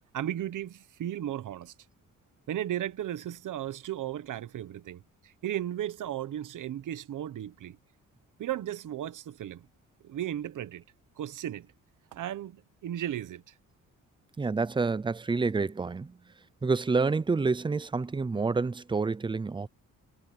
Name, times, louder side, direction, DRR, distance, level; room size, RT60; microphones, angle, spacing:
voice 1, 0.1-1.7 2.5-7.8 8.4-9.7 10.0-10.8 11.2-11.7 12.1-13.5, right 11 dB, 65° right, 1.1 m, -35 dB
voice 2, 14.4-16.2 16.6-19.7, right 4 dB, 15° right, 0.5 m, -28 dB
cardioid pair, 140°, 34 cm